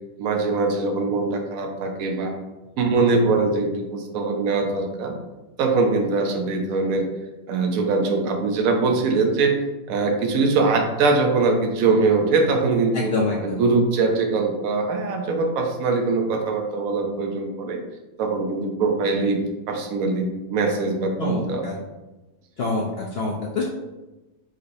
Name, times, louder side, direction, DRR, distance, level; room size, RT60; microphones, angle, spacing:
voice 1, 0.2-2.3 2.8-5.1 5.6-7.1 7.5-9.5 9.9-13.1 13.4-17.8 18.2-19.4 19.7-21.6, right 3 dB, 65° right, 3 dB, 1.0 m, -22 dB
voice 2, 12.9-13.6 21.2-21.8 22.6-23.6, left 3 dB, 80° left, -2 dB, 0.5 m, -26 dB
4.9 x 3.2 x 2.7 m, 1.1 s
omnidirectional pair, 1.7 m